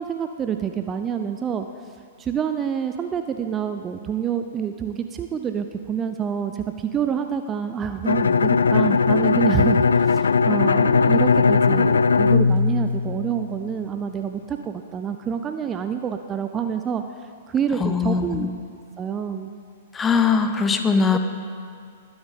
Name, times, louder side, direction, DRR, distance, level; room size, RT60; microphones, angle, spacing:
voice 1, 0.0-1.7 2.2-17.0 17.5-18.5 19.0-19.5 21.1-21.2, right 8 dB, 20° right, 7 dB, 0.6 m, -27 dB
Bowed string instrument, 8.1-13.7, left 5 dB, 70° left, 0.3 m, -19 dB
voice 2, 17.8-18.5 19.9-21.2, left 5 dB, 15° left, 7 dB, 0.9 m, -21 dB
20.5 x 8.0 x 5.2 m, 2.2 s
figure-of-eight pair, 110°, 0 cm